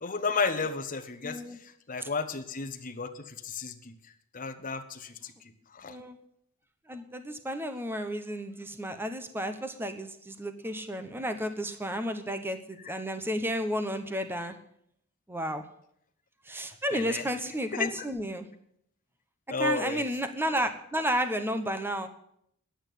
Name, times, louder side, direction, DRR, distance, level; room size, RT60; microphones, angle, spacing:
voice 1, 0.0-1.4 1.9-3.9 4.3-5.1 5.7-5.9 16.9-17.2 17.7-17.9 19.5-20.0, left 4 dB, 40° left, 8 dB, 1.0 m, -32 dB
voice 2, 1.2-1.6 2.0-2.1 5.9-6.2 6.9-14.6 15.3-15.6 16.5-18.5 19.6-22.1, equal, 10° right, 8 dB, 1.0 m, -32 dB
10.5 x 8.7 x 9.2 m, 0.71 s
head